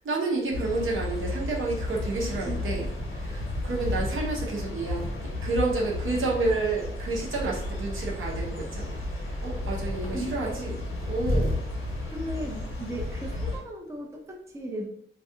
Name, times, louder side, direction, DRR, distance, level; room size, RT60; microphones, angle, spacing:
voice 1, 0.0-2.9 3.1-5.1 5.4-9.0 9.2-10.8 11.1-11.5, right 3 dB, 75° right, -3 dB, 0.8 m, -30 dB
sound 1, 0.5-13.6, left 2 dB, 85° left, 0.7 m, -32 dB
voice 2, 2.4-2.8 9.9-10.7 12.1-14.9, right 1 dB, 15° right, 0 dB, 0.4 m, -37 dB
2.3 x 2.3 x 2.7 m, 0.70 s
wide cardioid pair, 140°, 21 cm